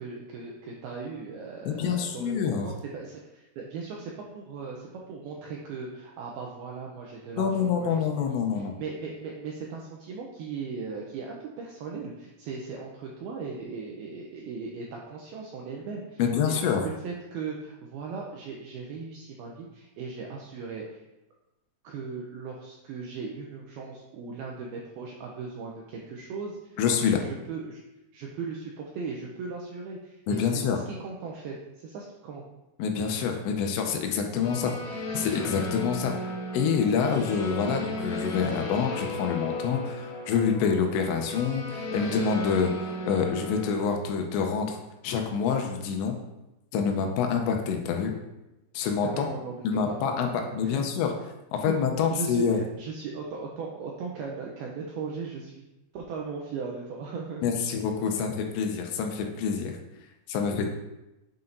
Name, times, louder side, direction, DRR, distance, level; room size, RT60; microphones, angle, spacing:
voice 1, 0.0-16.2 16.5-21.0 21.8-26.8 27.1-27.8 28.1-32.4 34.4-34.6 36.9-37.2 47.0-47.1 49.0-50.9 51.6-51.8 52.1-55.6 55.9-57.4, right 5 dB, 85° right, -2 dB, 2.2 m, -38 dB
voice 2, 1.7-2.7 7.4-8.7 16.2-16.8 26.8-27.3 30.3-30.8 32.8-34.7 35.1-36.1 36.5-42.7 43.1-44.8 45.0-46.1 46.7-48.1 48.7-49.3 49.6-51.1 51.5-52.6 57.4-59.8 60.3-60.7, left 6 dB, 85° left, 3 dB, 2.9 m, -27 dB
sound 1, 34.4-43.8, left 1 dB, 50° left, 2.9 m, -35 dB
8.7 x 5.7 x 2.7 m, 0.96 s
omnidirectional pair, 5.2 m